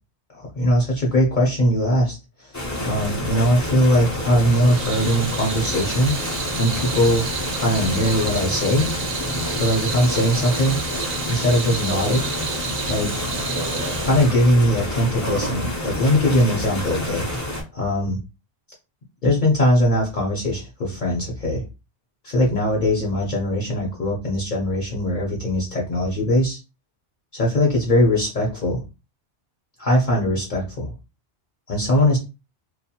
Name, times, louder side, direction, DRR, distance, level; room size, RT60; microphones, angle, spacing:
voice 1, 0.3-6.2 6.5-7.3 7.6-8.9 9.5-10.8 11.3-12.2 12.9-13.1 13.8-18.2 19.2-21.6 22.2-26.6 27.3-28.8 29.8-30.9 31.7-32.2, equal, 50° left, -3 dB, 0.8 m, -21 dB
sound 1, 2.5-17.6, left 1 dB, 25° left, 0.4 m, -28 dB
Water tap faucet / Sink (filling or washing), 4.3-15.6, right 5 dB, 65° right, 0.7 m, -31 dB
2.5 x 2.2 x 2.8 m, 0.28 s
omnidirectional pair, 1.2 m